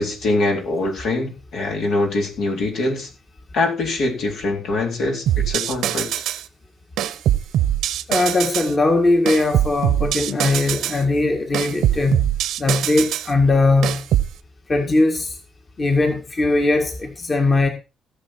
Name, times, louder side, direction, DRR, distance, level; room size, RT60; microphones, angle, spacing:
voice 1, 0.0-3.1 3.5-6.1, left 2 dB, 75° left, 4.0 m, -23 dB
sound 1, 5.3-6.4 7.0-8.7 9.3-11.0 11.5-13.3 13.8-14.3, right 11 dB, 80° right, 0.9 m, -22 dB
voice 2, 8.1-12.3 12.6-14.0 14.7-15.4 15.8-17.7, left 2 dB, 35° left, 1.9 m, -19 dB
16.5 x 7.0 x 4.6 m
cardioid pair, 90°, 0 cm